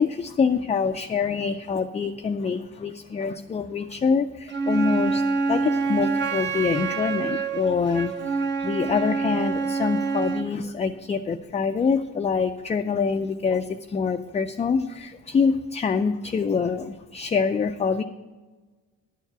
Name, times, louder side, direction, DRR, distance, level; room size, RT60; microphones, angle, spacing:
voice 1, 0.0-5.2 5.5-18.0, left 5 dB, 20° left, 6 dB, 0.4 m, -25 dB
Wind instrument woodwind instrument, 4.5-10.5, right 4 dB, 40° right, 0.8 m, -26 dB
10.5 x 4.6 x 7.9 m, 1.3 s
cardioid pair, 90°, 30 cm